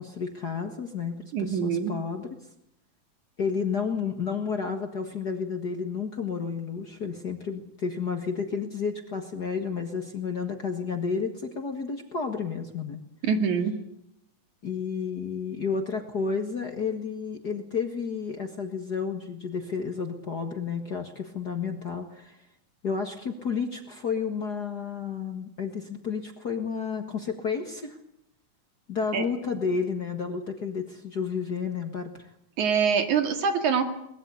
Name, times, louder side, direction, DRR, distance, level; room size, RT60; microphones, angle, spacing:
voice 1, 0.0-2.4 3.4-13.0 14.6-22.4 22.8-28.0 28.9-32.3, left 5 dB, 40° left, 5 dB, 1.7 m, -31 dB
voice 2, 1.3-1.9 13.2-13.7 29.1-29.3 32.6-33.8, right 6 dB, 70° right, 7 dB, 3.6 m, -24 dB
22.5 x 20.5 x 8.1 m, 0.78 s
omnidirectional pair, 3.6 m